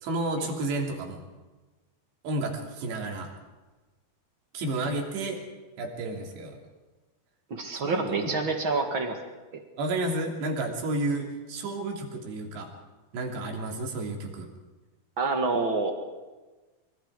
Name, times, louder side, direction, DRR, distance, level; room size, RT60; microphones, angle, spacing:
voice 1, 0.0-1.2 2.2-3.3 4.5-5.4 5.8-6.6 7.8-8.4 9.8-12.7 13.1-14.5, right 2 dB, 70° right, 1 dB, 5.0 m, -31 dB
voice 2, 7.5-9.2 15.2-15.9, right 3 dB, 45° right, 3 dB, 1.7 m, -27 dB
25.5 x 24.0 x 4.9 m, 1.2 s
omnidirectional pair, 5.3 m